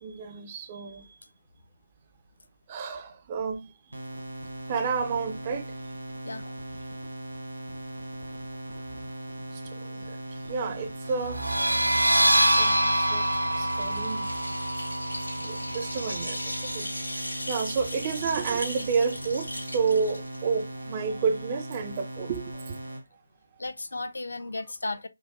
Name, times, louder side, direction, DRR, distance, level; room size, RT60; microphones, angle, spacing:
voice 1, 0.0-1.1 2.7-3.7 4.7-5.7 9.8-10.2 10.5-11.6 12.6-13.3 13.6-14.3 15.4-16.9 17.5-22.8, right 5 dB, 20° right, 0.3 m, -30 dB
sound 1, 3.9-23.0, right 1 dB, 70° right, 1.1 m, -39 dB
voice 2, 6.2-6.6 6.9-7.1 9.0-9.1 10.3-10.4 12.2-13.2 23.6-25.1, left 2 dB, 65° left, 0.5 m, -37 dB
sound 2, 11.3-16.7, right 1 dB, 90° right, 0.5 m, -25 dB
sound 3, 12.6-20.9, left 1 dB, 80° left, 1.9 m, -38 dB
4.6 x 2.0 x 2.2 m
figure-of-eight pair, 155°, 0 cm